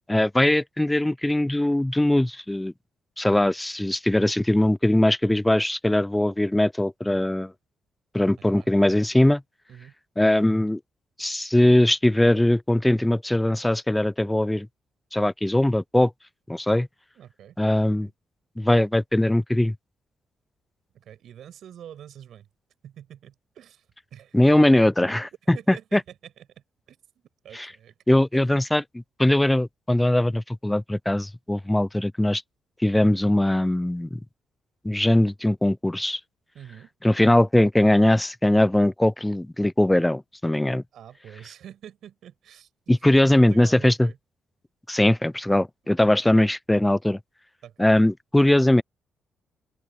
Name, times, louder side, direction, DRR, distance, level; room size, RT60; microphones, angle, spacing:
voice 1, 0.1-2.7 3.2-7.5 8.1-9.4 10.2-10.8 11.2-14.7 15.1-16.1 16.5-16.9 17.6-18.1 18.6-19.8 24.3-25.6 25.9-26.0 28.1-28.8 29.2-32.4 32.8-34.2 34.8-36.2 37.0-40.8 42.9-44.1 44.9-47.2 47.8-48.8, left 1 dB, 5° left, 0.4 m, -20 dB
voice 2, 8.4-8.7 9.7-9.9 17.1-17.6 18.0-18.1 20.9-22.5 22.8-24.6 25.5-28.2 36.5-36.9 40.9-42.7 43.0-44.2 46.0-46.2 47.6-47.9, right 10 dB, 65° right, 6.8 m, -46 dB
open air
cardioid pair, 130°, 0 cm